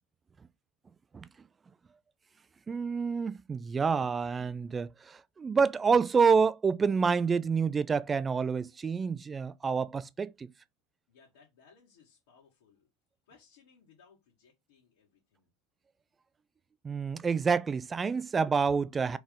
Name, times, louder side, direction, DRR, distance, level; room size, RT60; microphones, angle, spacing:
voice 1, 2.7-10.5 16.8-19.2, right 5 dB, 25° right, 0.4 m, -28 dB
voice 2, 11.1-12.9 13.2-15.5, left 5 dB, 70° left, 1.7 m, -62 dB
4.3 x 3.4 x 3.6 m
hypercardioid pair, 85°, 0 cm